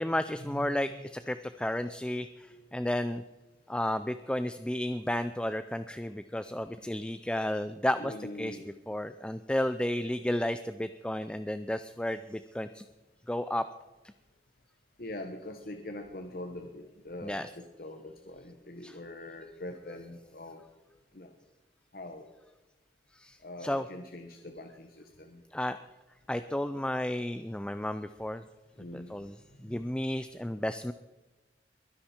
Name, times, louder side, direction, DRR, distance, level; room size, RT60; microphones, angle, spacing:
voice 1, 0.0-3.2 3.7-8.6 8.9-12.8 13.3-13.7 17.2-17.5 18.8-19.0 23.1-23.9 25.5-25.8 26.3-28.4 28.9-30.9, left 1 dB, 5° left, 11 dB, 0.3 m, -33 dB
voice 2, 8.0-8.7 15.0-20.6 21.1-21.3 21.9-22.3 23.4-25.4 28.8-29.1 29.7-29.8, left 1 dB, 55° left, 6 dB, 1.2 m, -43 dB
22.0 x 10.0 x 4.4 m, 1.1 s
head